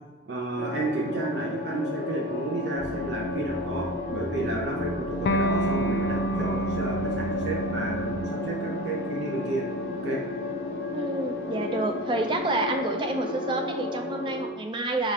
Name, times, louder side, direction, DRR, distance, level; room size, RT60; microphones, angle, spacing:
voice 1, 0.3-9.6 10.0-10.2, right 2 dB, 70° right, -3 dB, 0.7 m, -31 dB
sound 1, 0.6-14.5, left 3 dB, 90° left, 0.8 m, -33 dB
sound 2, 2.7-8.2, equal, 50° right, 1.1 m, -37 dB
Electric guitar, 5.3-12.4, right 1 dB, 65° left, 0.3 m, -31 dB
voice 2, 10.9-15.1, right 2 dB, 25° right, 4 dB, 0.5 m, -28 dB
5.0 x 2.5 x 4.2 m, 1.2 s
head